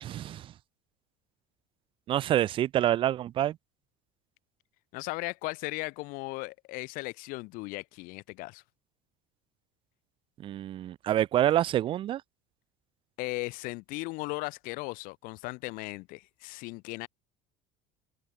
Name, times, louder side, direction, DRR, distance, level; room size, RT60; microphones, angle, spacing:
voice 1, 0.0-0.5 2.1-3.6 10.4-12.2, right 12 dB, 30° right, 0.9 m, -27 dB
voice 2, 4.9-8.6 13.2-17.1, left 24 dB, 55° left, 2.0 m, -37 dB
cardioid pair, 170°, 17 cm